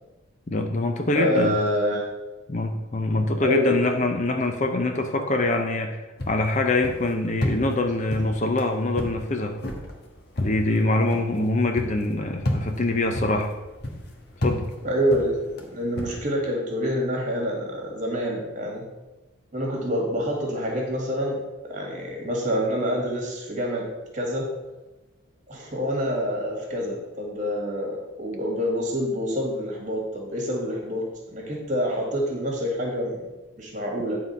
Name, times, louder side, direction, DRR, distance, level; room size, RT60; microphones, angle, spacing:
voice 1, 0.5-1.6 2.5-9.6 10.4-13.5 14.4-14.7, left 2 dB, 35° left, 5 dB, 0.5 m, -24 dB
voice 2, 1.1-2.1 3.4-3.8 14.8-18.8 19.5-21.4 21.6-23.8 24.1-24.5 25.5-31.0 31.3-33.2 33.6-34.2, equal, 35° right, -1 dB, 2.0 m, -26 dB
sound 1, 6.2-16.1, left 1 dB, 50° left, 1.2 m, -32 dB
9.6 x 3.8 x 5.5 m, 1.1 s
head